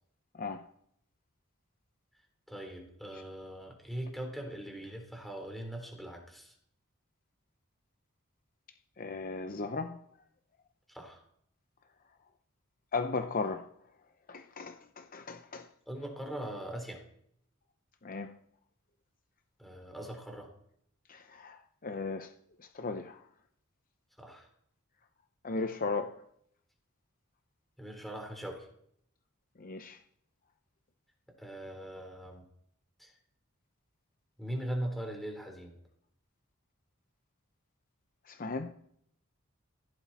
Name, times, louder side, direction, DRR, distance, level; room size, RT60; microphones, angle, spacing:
voice 1, 2.5-6.5 10.9-11.2 15.9-17.0 19.6-20.5 24.2-24.5 27.8-28.7 31.4-32.4 33.0-33.1 34.4-35.7, right 1 dB, ahead, 3.9 m, -40 dB
voice 2, 9.0-10.0 12.9-13.7 14.3-15.7 18.0-18.3 21.1-22.3 22.7-23.2 25.4-26.1 29.6-30.0 38.3-38.7, left 4 dB, 40° left, 0.7 m, -36 dB
19.0 x 16.0 x 4.2 m
head